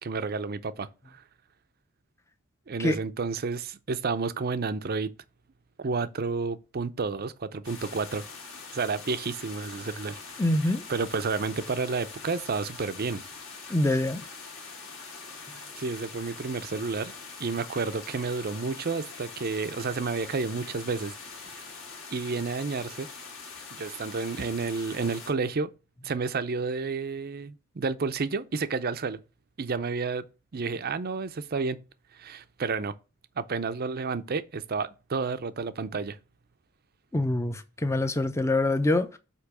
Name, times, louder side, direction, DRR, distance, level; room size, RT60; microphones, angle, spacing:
voice 1, 0.0-1.2 2.7-5.1 5.8-8.2 8.7-10.2 10.9-13.2 15.8-17.1 17.4-21.1 21.4-21.6 22.1-23.1 23.7-25.7 26.0-29.2 29.6-30.2 30.5-31.8 32.1-32.9 33.4-36.2, right 4 dB, 45° right, 0.5 m, -30 dB
sound 1, 7.6-25.3, left 4 dB, 65° left, 2.1 m, -43 dB
voice 2, 10.4-10.8 13.7-14.2 37.1-39.2, left 1 dB, 10° left, 0.6 m, -25 dB
8.2 x 3.0 x 6.0 m
head